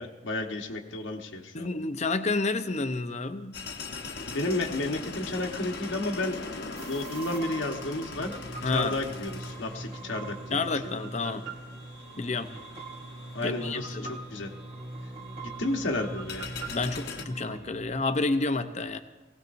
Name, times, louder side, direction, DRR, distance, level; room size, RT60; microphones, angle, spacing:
voice 1, 0.0-1.7 4.3-6.4 6.9-8.4 8.6-10.9 13.3-14.5 15.4-16.5, left 2 dB, 90° left, 2 dB, 1.3 m, -32 dB
voice 2, 1.5-3.6 8.6-9.0 10.5-11.5 12.2-12.5 13.4-14.2 16.7-19.0, left 3 dB, 35° left, 9 dB, 0.7 m, -29 dB
sound 1, 3.5-17.3, left 3 dB, 60° left, 1.0 m, -42 dB
sound 2, 6.8-17.6, right 5 dB, 50° right, 2.1 m, -44 dB
sound 3, 8.1-17.9, right 1 dB, 30° right, 2.0 m, -43 dB
19.5 x 17.5 x 2.6 m, 1.2 s
head